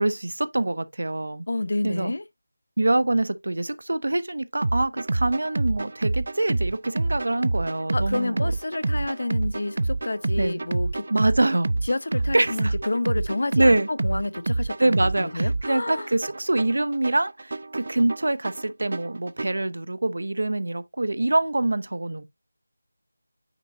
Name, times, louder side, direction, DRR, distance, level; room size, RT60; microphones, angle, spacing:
voice 1, 0.0-1.4 1.8-2.1 2.8-8.4 10.4-10.6 11.1-11.7 12.3-12.7 13.6-13.9 14.8-22.2, right 2 dB, 70° right, 0.8 m, -25 dB
voice 2, 1.5-2.2 7.9-11.1 11.9-16.1, left 2 dB, 60° left, 0.7 m, -29 dB
sound 1, 4.6-19.6, right 2 dB, 50° right, 0.4 m, -28 dB
9.1 x 4.2 x 2.6 m
figure-of-eight pair, 175°, 0 cm